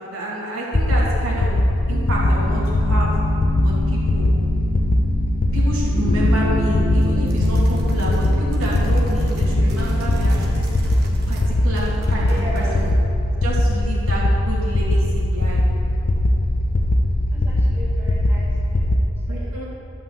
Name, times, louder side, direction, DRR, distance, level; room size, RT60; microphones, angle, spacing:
voice 1, 0.0-1.5 1.9-3.1 3.6-4.3 5.5-10.7 11.3-12.9 13.4-15.6 19.3-19.6, equal, 85° right, -5 dB, 2.7 m, -29 dB
sound 1, 0.7-19.0, left 1 dB, 40° left, 0.6 m, -20 dB
sound 2, 1.9-10.4, left 1 dB, 70° left, 2.4 m, -27 dB
sound 3, 7.3-11.5 11.7-13.1, right 1 dB, 50° right, 1.3 m, -33 dB
voice 2, 12.2-12.8 17.3-19.6, left 1 dB, 10° right, -5 dB, 1.5 m, -37 dB
11.5 x 5.7 x 7.3 m, 2.8 s
head